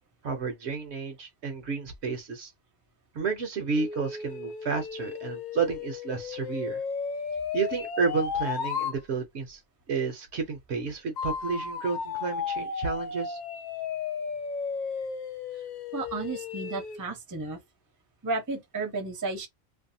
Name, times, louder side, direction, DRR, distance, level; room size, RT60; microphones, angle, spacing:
voice 1, 0.2-2.5 3.1-6.8 7.5-9.6 9.9-13.4, right 5 dB, 60° right, 0.9 m, -31 dB
sound 1, 3.7-9.0 11.2-17.0, left 6 dB, 65° left, 0.4 m, -34 dB
voice 2, 15.9-17.6 18.2-19.5, right 3 dB, 20° right, 0.6 m, -33 dB
2.6 x 2.2 x 2.6 m
omnidirectional pair, 1.4 m